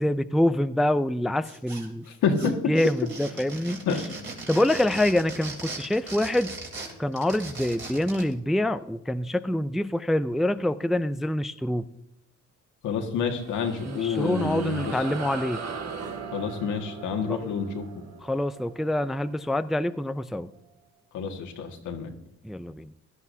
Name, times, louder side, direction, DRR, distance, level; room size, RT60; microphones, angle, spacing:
voice 1, 0.0-2.1 2.4-4.1 4.5-6.6 7.0-11.9 13.8-15.6 17.3-17.4 18.2-20.5 22.4-22.9, left 1 dB, ahead, 12 dB, 0.4 m, -26 dB
sound 1, 1.4-2.1 2.3-8.3, right 3 dB, 40° right, 3.3 m, -39 dB
voice 2, 12.8-14.8 16.3-17.8 21.1-22.1, left 6 dB, 80° left, 3 dB, 1.8 m, -28 dB
sound 2, 13.1-20.0, right 5 dB, 60° right, 1.5 m, -39 dB
16.5 x 12.0 x 2.7 m, 0.81 s
cardioid pair, 90°, 30 cm